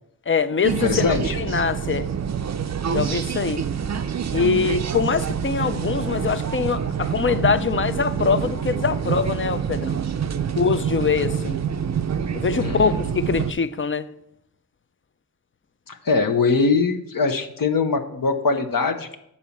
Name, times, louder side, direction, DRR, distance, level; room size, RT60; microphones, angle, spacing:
voice 1, 0.3-2.1 2.9-3.6 4.3-10.0 10.5-11.6 12.3-14.1, left 6 dB, 35° left, 0.4 m, -23 dB
sound 1, 0.6-13.5, right 7 dB, 45° right, 0.5 m, -26 dB
voice 2, 0.8-1.4 12.6-13.0 15.9-19.2, left 4 dB, 65° left, 0.8 m, -22 dB
8.5 x 4.1 x 7.1 m
wide cardioid pair, 105°, 37 cm